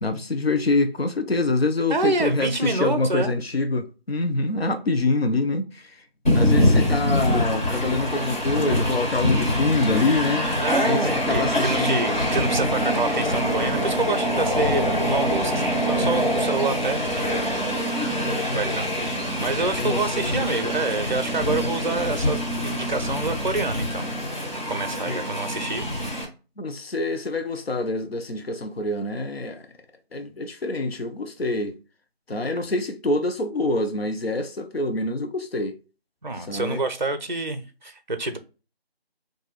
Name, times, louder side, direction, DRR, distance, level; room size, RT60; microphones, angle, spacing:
voice 1, 0.0-6.0 6.3-10.5 10.8-12.0 14.8-15.1 18.1-18.6 19.8-20.3 24.9-25.2 26.6-29.6 30.1-31.7 32.3-35.8 36.5-36.8, left 2 dB, 70° left, 0.7 m, -26 dB
voice 2, 1.9-3.4 10.6-17.0 18.5-24.1 24.7-25.9 36.2-38.4, right 3 dB, 50° right, 0.4 m, -27 dB
Train, 6.3-26.3, equal, 45° left, 1.7 m, -24 dB
3.9 x 2.6 x 3.0 m
figure-of-eight pair, 175°, 31 cm